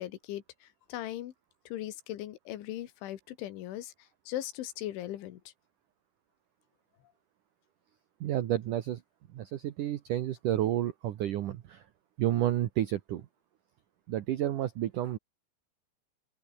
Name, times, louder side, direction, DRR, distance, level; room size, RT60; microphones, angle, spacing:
voice 1, 0.0-1.3 1.7-3.9 4.3-5.4, left 13 dB, 80° left, 4.0 m, -39 dB
voice 2, 8.2-9.0 9.3-11.8 12.2-13.3 14.1-15.2, right 12 dB, 90° right, 1.8 m, -30 dB
omnidirectional pair, 5.5 m